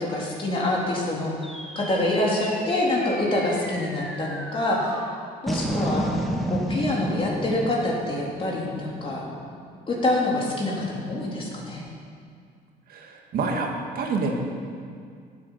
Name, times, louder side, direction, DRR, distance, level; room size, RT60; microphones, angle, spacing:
voice 1, 0.0-1.3 1.7-5.0 5.4-6.0 6.5-9.2 9.9-11.8, left 1 dB, 30° left, -3 dB, 3.4 m, -26 dB
sound 1, 1.4-10.0, equal, ahead, 1.4 m, -32 dB
voice 2, 12.9-13.7 14.0-14.4, right 4 dB, 60° right, 1 dB, 2.0 m, -27 dB
15.0 x 8.5 x 5.7 m, 2.2 s
cardioid pair, 110°, 17 cm